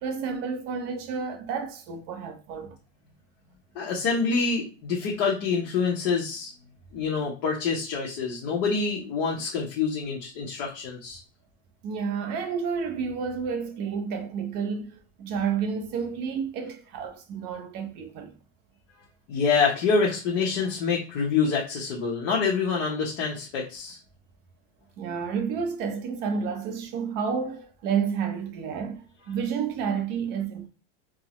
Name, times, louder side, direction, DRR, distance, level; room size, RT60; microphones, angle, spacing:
voice 1, 0.0-2.8 11.8-18.4 25.0-30.7, right 6 dB, 30° right, 0.4 m, -30 dB
voice 2, 3.7-6.5 6.9-11.2 19.3-24.0, left 5 dB, 40° left, 0.8 m, -26 dB
3.5 x 2.0 x 2.9 m
supercardioid pair, 145°, 37 cm